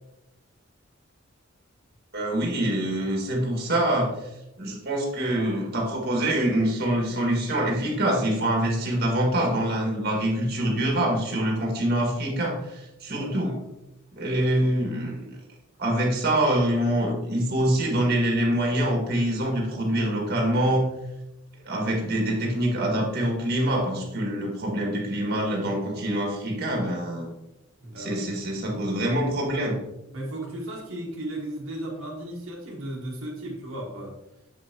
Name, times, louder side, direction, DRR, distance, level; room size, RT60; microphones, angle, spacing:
voice 1, 2.1-4.1 4.6-13.6 14.2-15.3 15.8-20.9 21.6-27.3 28.0-29.8, right 1 dB, 50° right, 0 dB, 1.8 m, -25 dB
voice 2, 13.1-13.5 27.8-28.2 30.1-34.1, right 1 dB, 75° right, -3 dB, 1.5 m, -35 dB
7.5 x 5.6 x 2.9 m, 0.91 s
head